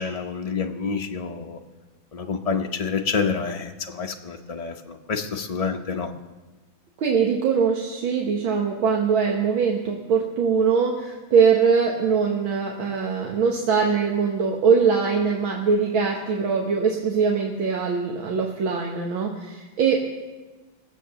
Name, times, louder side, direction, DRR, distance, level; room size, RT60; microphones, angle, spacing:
voice 1, 0.0-1.6 2.1-6.1, left 5 dB, 70° left, 3 dB, 0.3 m, -28 dB
voice 2, 7.0-20.0, right 6 dB, 85° right, 0 dB, 2.0 m, -22 dB
18.5 x 8.3 x 6.9 m, 1.2 s
omnidirectional pair, 2.1 m